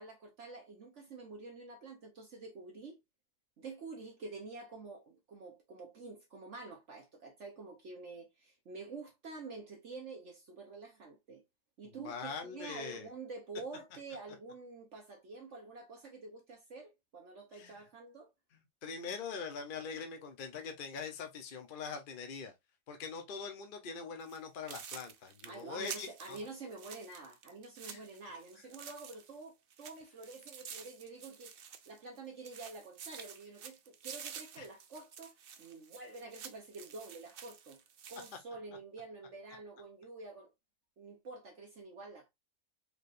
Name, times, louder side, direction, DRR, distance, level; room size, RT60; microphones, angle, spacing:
voice 1, 0.0-3.0 3.6-11.4 11.8-18.3 25.4-31.6 31.9-37.8 38.1-40.5 41.0-42.3, right 3 dB, 50° right, 1.1 m, -48 dB
voice 2, 11.8-13.1 17.5-17.8 18.8-22.5 22.9-26.4 27.9-28.0 34.6-34.7, left 5 dB, 45° left, 0.8 m, -43 dB
sound 1, 24.2-24.4 24.7-29.4 29.7-32.2 32.4-38.4, right 7 dB, 70° right, 0.5 m, -49 dB
4.8 x 3.2 x 2.5 m
omnidirectional pair, 1.7 m